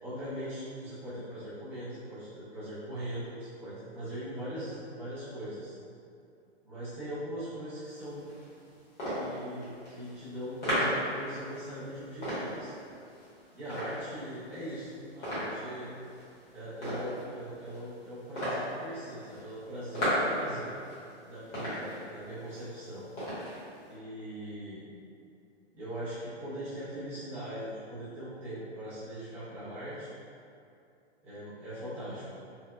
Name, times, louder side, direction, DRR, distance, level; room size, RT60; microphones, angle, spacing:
voice 1, 0.0-5.8 6.6-8.3 9.1-12.7 13.5-15.9 16.5-20.7 21.3-23.1 23.9-24.8 25.7-30.1 31.2-32.2, equal, 5° right, -14 dB, 0.4 m, -40 dB
sound 1, 7.8-23.9, equal, 20° left, 0.9 m, -37 dB
3.0 x 2.1 x 2.2 m, 2.5 s
hypercardioid pair, 145°, 33 cm